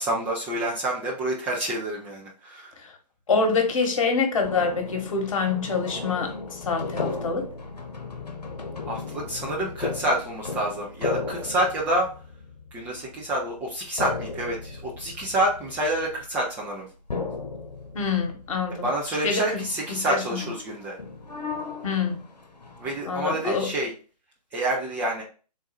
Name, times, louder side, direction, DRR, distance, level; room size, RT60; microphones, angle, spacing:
voice 1, 0.0-2.7 8.9-12.1 12.7-16.9 18.8-21.0 22.8-23.9 24.5-25.2, right 1 dB, 10° right, 0.4 m, -28 dB
voice 2, 3.3-7.5 17.9-18.9 19.2-19.6 19.9-20.4 21.8-22.2 23.1-23.7, left 4 dB, 50° left, 1.1 m, -26 dB
sound 1, 4.4-16.5 17.1-19.0 19.2-19.4 19.7-23.0, left 4 dB, 70° left, 0.9 m, -36 dB
3.9 x 2.3 x 4.0 m
figure-of-eight pair, 130°, 21 cm